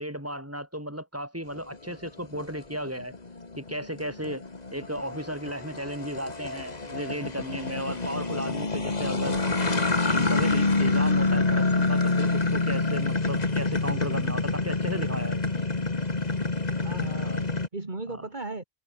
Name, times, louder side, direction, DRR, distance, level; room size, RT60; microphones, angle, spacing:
voice 1, 0.0-3.1 3.6-4.4 4.7-9.4 10.1-15.6 17.2-17.4 18.1-18.2, equal, 10° right, 7.6 m, -35 dB
sound 1, 1.6-17.7, left 3 dB, 35° left, 2.1 m, -27 dB
voice 2, 16.7-18.6, right 2 dB, 45° right, 2.9 m, -37 dB
omnidirectional pair, 1.1 m